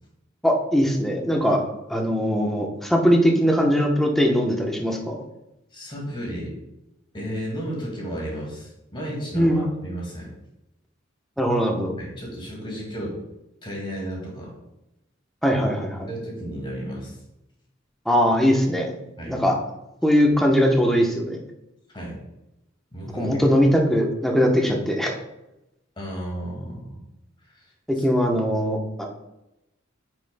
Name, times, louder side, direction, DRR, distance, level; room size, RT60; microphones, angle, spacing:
voice 1, 0.4-1.6 1.9-5.1 9.3-9.6 11.4-12.0 15.4-16.1 18.1-18.9 19.3-19.5 20.0-21.4 23.1-25.2 27.9-29.1, equal, ahead, 0 dB, 1.0 m, -20 dB
voice 2, 5.7-6.5 7.1-10.3 12.0-13.2 13.6-14.5 16.1-17.2 19.2-19.3 21.9-22.2 22.9-23.5 26.0-27.0 27.4-27.7 28.0-28.1, equal, 25° left, -2 dB, 2.2 m, -33 dB
9.5 x 6.1 x 2.3 m, 0.92 s
head